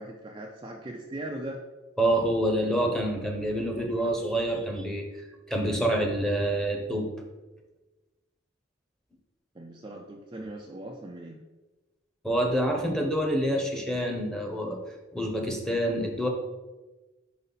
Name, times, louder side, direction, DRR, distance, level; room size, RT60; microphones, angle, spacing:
voice 1, 0.0-1.6 9.5-11.4, right 1 dB, 25° right, 0 dB, 0.4 m, -39 dB
voice 2, 2.0-5.0 5.5-7.1 12.2-14.8 15.1-16.3, right 1 dB, 5° left, 1 dB, 0.9 m, -27 dB
5.3 x 5.0 x 4.0 m, 1.2 s
head